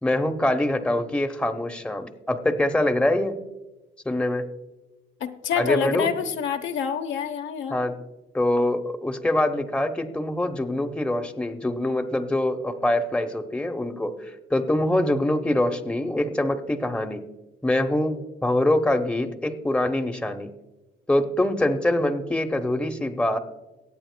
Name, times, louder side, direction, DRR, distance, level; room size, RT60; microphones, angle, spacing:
voice 1, 0.0-3.4 4.0-4.5 5.6-6.1 7.7-8.0 8.3-17.2 17.6-20.5 21.1-23.4, left 1 dB, 5° left, 5 dB, 0.9 m, -24 dB
voice 2, 5.2-7.8, left 7 dB, 70° left, 6 dB, 0.9 m, -27 dB
23.0 x 8.9 x 2.2 m, 1.1 s
cardioid pair, 90°, 20 cm